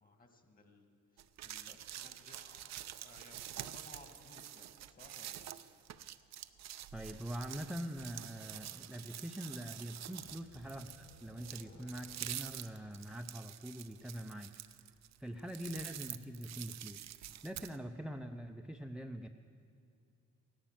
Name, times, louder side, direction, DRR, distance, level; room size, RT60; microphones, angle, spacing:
voice 1, 0.0-0.9 1.1-5.6 10.2-10.3, left 2 dB, 30° left, 5 dB, 2.0 m, -59 dB
sound 1, 1.2-17.8, right 12 dB, 65° right, 0.6 m, -47 dB
sound 2, 3.2-7.0 8.1-8.9 9.1-14.0, left 2 dB, 75° left, 4.8 m, -65 dB
voice 2, 6.9-14.6 15.2-17.1 17.4-19.3, equal, 5° right, 4 dB, 0.6 m, -44 dB
16.5 x 12.0 x 7.4 m, 2.4 s
cardioid pair, 90°, 30 cm